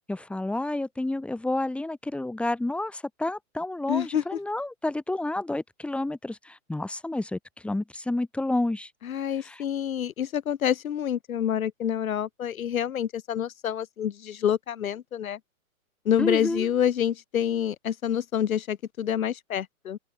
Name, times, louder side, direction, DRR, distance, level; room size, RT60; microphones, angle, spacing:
voice 1, 0.1-8.9 9.4-9.6 16.2-16.7, left 2 dB, 5° left, 4.6 m, -30 dB
voice 2, 3.9-4.2 9.0-15.4 16.0-20.0, left 9 dB, 70° left, 2.8 m, -27 dB
open air
hypercardioid pair, 160°, 43 cm